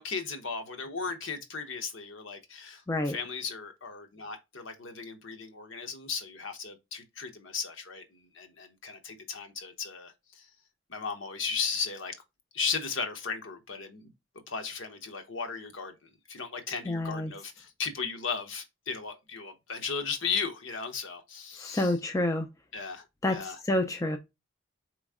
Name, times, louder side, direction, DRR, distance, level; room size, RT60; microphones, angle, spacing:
voice 1, 0.0-8.0 8.3-10.1 10.9-12.1 12.5-14.1 14.5-15.9 16.3-21.9 22.7-23.6, left 5 dB, 65° left, 0.9 m, -36 dB
voice 2, 16.9-17.3 21.6-22.5 23.2-24.2, left 1 dB, 15° left, 0.3 m, -28 dB
4.4 x 3.1 x 3.6 m
head